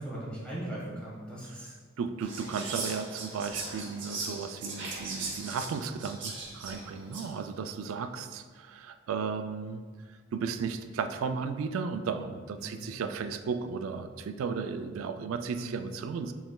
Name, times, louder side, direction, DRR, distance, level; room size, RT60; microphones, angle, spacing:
voice 1, 0.0-1.7 12.6-12.9 15.5-15.8, right 1 dB, 5° left, -7 dB, 1.4 m, -39 dB
voice 2, 2.0-9.8 10.3-16.3, right 5 dB, 85° right, 9 dB, 0.3 m, -35 dB
Whispering, 2.2-7.4, right 3 dB, 65° right, 0.8 m, -39 dB
7.2 x 3.2 x 2.2 m, 1.5 s
head